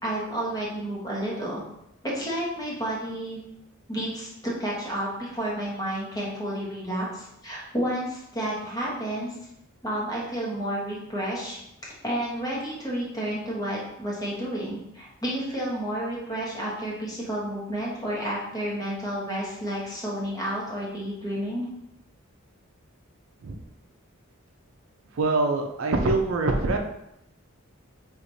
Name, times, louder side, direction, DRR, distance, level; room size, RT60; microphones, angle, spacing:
voice 1, 0.0-1.6 2.0-3.4 3.9-9.3 9.8-11.6 12.0-21.7, right 1 dB, 15° left, -5 dB, 0.9 m, -31 dB
voice 2, 25.1-26.8, right 3 dB, 65° right, 2 dB, 0.5 m, -24 dB
4.5 x 2.4 x 2.6 m, 0.81 s
head